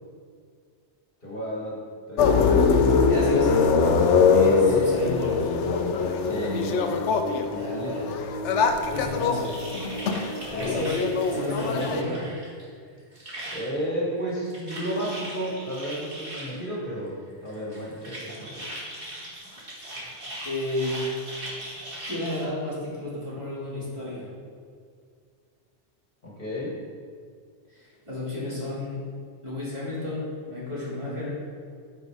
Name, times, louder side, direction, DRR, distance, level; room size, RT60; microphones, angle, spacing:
voice 1, 1.2-1.8 2.1-2.7 3.5-3.6 4.4-4.8 6.2-7.0 7.5-8.1 9.1-9.3 10.4-11.1 13.5-17.1 17.4-18.6 26.2-26.8, equal, 45° left, -5 dB, 2.0 m, -33 dB
sound 1, 2.2-12.0, left 5 dB, 80° left, 0.9 m, -22 dB
voice 2, 3.1-3.6 4.3-5.5 7.5-8.1 8.9-9.6 10.5-11.0 11.3-12.3 20.4-21.0 22.1-24.3 27.7-29.0 29.4-31.4, left 1 dB, 25° right, -8 dB, 2.3 m, -31 dB
sound 2, 9.4-12.6 12.9-13.8 14.2-16.6 17.5-22.4, right 1 dB, 50° right, 2.1 m, -39 dB
9.1 x 4.4 x 4.8 m, 2.1 s
omnidirectional pair, 1.2 m